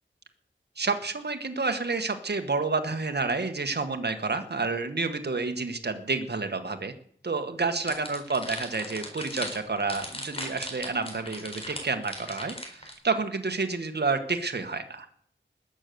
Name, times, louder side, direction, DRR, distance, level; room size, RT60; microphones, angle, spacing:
voice 1, 0.8-6.9 7.2-15.1, right 4 dB, 55° right, 6 dB, 1.5 m, -29 dB
sound 1, 7.9-12.9, left 1 dB, 30° left, 4.3 m, -38 dB
20.0 x 7.9 x 6.9 m, 0.65 s
wide cardioid pair, 65°, 20 cm